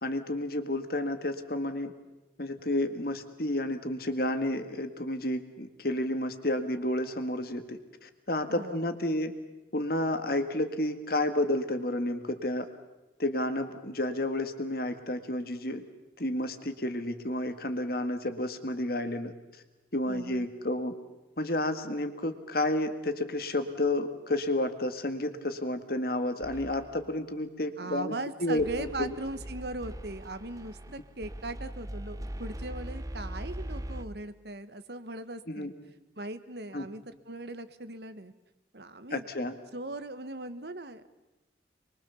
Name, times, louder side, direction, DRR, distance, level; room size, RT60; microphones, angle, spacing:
voice 1, 0.0-1.9 2.4-9.3 9.7-12.7 13.2-15.8 16.2-19.3 19.9-20.9 21.4-28.1 28.4-29.1 35.5-35.7 36.7-36.9 39.1-39.5, left 1 dB, 50° left, 8 dB, 1.9 m, -31 dB
voice 2, 8.5-9.0 20.1-20.5 27.8-35.7 36.2-38.3 38.7-39.2 39.7-41.1, right 2 dB, 60° right, 11 dB, 1.4 m, -39 dB
sound 1, 26.4-27.1 28.6-34.1, right 1 dB, 20° right, 0.8 m, -40 dB
25.5 x 22.5 x 7.1 m, 1.1 s
head